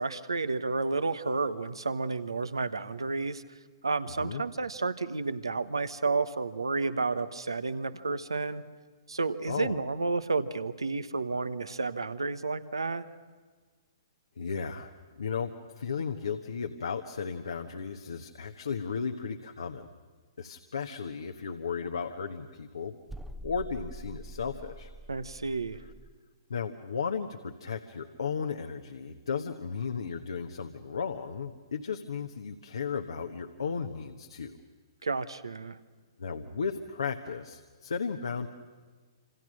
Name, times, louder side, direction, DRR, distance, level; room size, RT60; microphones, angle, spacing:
voice 1, 0.0-3.4 3.8-8.6 9.1-13.1 25.1-25.8 35.0-35.8, right 3 dB, 85° right, 12 dB, 1.2 m, -31 dB
voice 2, 9.5-9.8 14.4-19.9 20.4-22.9 23.4-24.9 26.5-34.6 36.2-38.5, left 6 dB, 75° left, 5 dB, 1.3 m, -35 dB
sound 1, 23.1-26.2, right 1 dB, 5° right, 0.8 m, -45 dB
27.0 x 27.0 x 6.5 m, 1.5 s
figure-of-eight pair, 125°, 2 cm